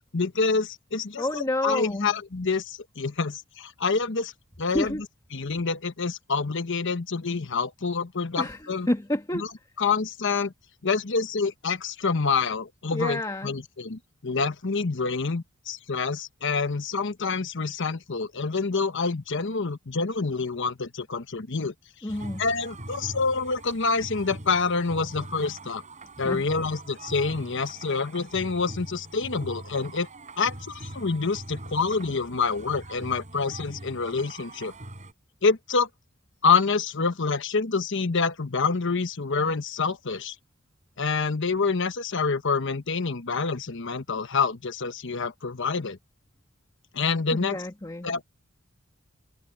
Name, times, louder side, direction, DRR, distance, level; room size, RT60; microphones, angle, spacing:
voice 1, 0.1-4.3 4.6-5.0 5.3-8.9 9.3-9.5 9.8-10.5 10.8-21.7 22.4-25.8 26.2-30.1 30.4-34.7 35.4-35.9 36.4-40.3 41.0-46.0 46.9-47.6 48.0-48.2, left 4 dB, 60° left, 1.2 m, -27 dB
voice 2, 1.2-2.1 4.7-5.0 8.4-9.4 12.9-13.5 22.0-22.4 26.2-26.4 47.3-48.1, left 1 dB, 20° left, 1.7 m, -29 dB
sound 1, 22.1-35.1, right 1 dB, 35° right, 6.8 m, -42 dB
head